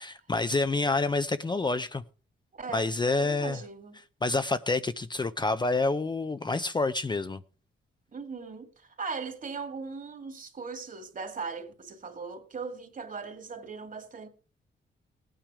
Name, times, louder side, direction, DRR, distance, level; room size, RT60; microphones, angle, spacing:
voice 1, 0.0-2.0 2.7-3.6 4.2-7.4, left 3 dB, 20° left, 0.6 m, -28 dB
voice 2, 2.5-4.0 8.1-14.3, right 5 dB, 40° right, 2.2 m, -39 dB
17.5 x 9.0 x 4.9 m
cardioid pair, 110°, 20 cm